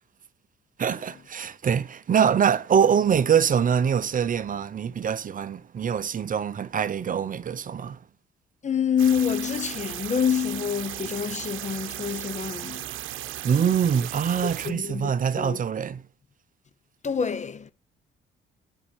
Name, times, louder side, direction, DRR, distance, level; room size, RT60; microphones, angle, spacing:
voice 1, 0.8-8.0 13.4-16.0, right 7 dB, 45° right, 0.7 m, -24 dB
voice 2, 8.6-12.9 14.4-15.6 17.0-17.7, left 7 dB, 35° left, 0.9 m, -27 dB
sound 1, 9.0-14.7, right 13 dB, 85° right, 0.8 m, -36 dB
9.3 x 5.8 x 7.1 m
cardioid pair, 90°, 20 cm